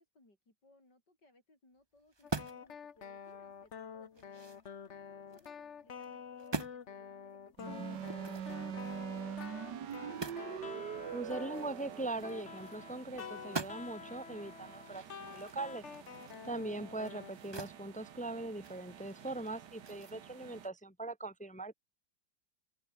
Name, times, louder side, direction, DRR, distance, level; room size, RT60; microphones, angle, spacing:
voice 1, 0.0-4.6 5.1-10.4, left 2 dB, 75° left, 8.5 m, -66 dB
sound 1, 2.1-2.8 3.2-3.3 3.8-5.5 5.9-6.1 6.4-6.8 7.9-10.6 10.8-10.9 11.2-13.1 13.3-14.1 14.5-17.8 18.2-20.1, right 3 dB, 20° right, 0.8 m, -45 dB
sound 2, 2.2-17.3, left 7 dB, 45° left, 1.4 m, -48 dB
sound 3, 7.6-20.7, right 9 dB, 80° right, 1.9 m, -46 dB
voice 2, 11.1-15.8 16.4-21.7, right 2 dB, 5° left, 1.1 m, -41 dB
open air
omnidirectional pair, 1.8 m